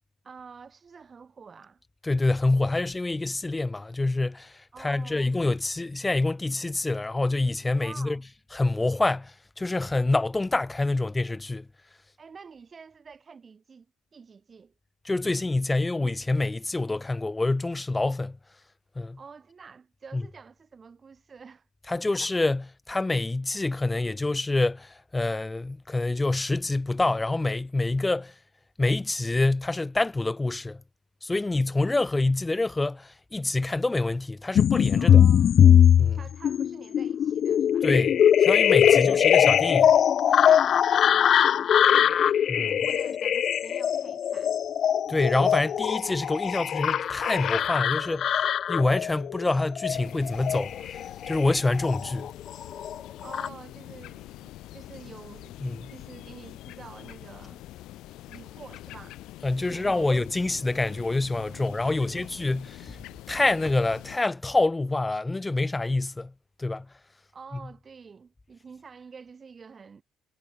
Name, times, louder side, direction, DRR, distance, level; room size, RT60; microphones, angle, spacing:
voice 1, 0.2-1.8 4.7-5.4 7.8-8.2 12.2-13.9 14.1-14.7 19.2-21.7 22.0-22.2 35.0-35.6 36.1-37.9 38.8-39.2 40.9-42.4 42.7-44.5 53.2-55.5 55.9-57.7 58.3-59.2 59.6-60.1 61.5-62.3 67.3-70.0, right 5 dB, 30° right, 5.9 m, -48 dB
voice 2, 2.0-8.2 8.5-11.7 15.0-18.4 18.9-19.2 20.1-20.2 21.9-28.3 28.8-30.8 31.2-35.3 36.0-36.2 37.8-39.9 42.5-42.8 45.1-50.7 51.3-52.3 55.6-55.9 59.4-63.0 63.3-66.3 66.6-66.9, left 2 dB, 15° left, 1.4 m, -26 dB
sound 1, 34.6-52.3 52.6-53.5, left 9 dB, 50° left, 0.4 m, -21 dB
sound 2, 49.9-64.2, left 16 dB, 85° left, 4.6 m, -45 dB
cardioid pair, 130°, 0 cm